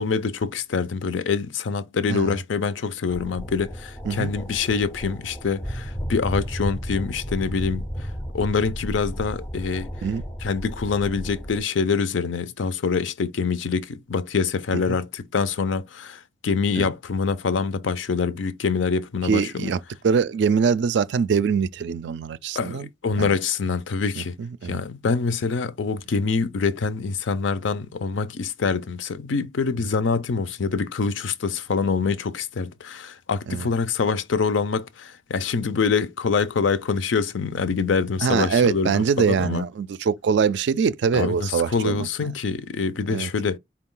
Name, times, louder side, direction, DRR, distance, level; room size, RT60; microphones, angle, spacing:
voice 1, 0.0-7.9 8.3-9.9 10.4-19.7 22.6-24.4 24.6-39.6 41.1-43.6, left 5 dB, 75° left, 0.5 m, -25 dB
sound 1, 3.1-11.6, equal, 10° left, 0.4 m, -33 dB
voice 2, 19.2-22.9 23.2-23.4 24.4-24.8 33.5-33.7 38.2-42.1 43.1-43.3, right 6 dB, 65° right, 0.3 m, -23 dB
4.6 x 2.3 x 3.7 m
head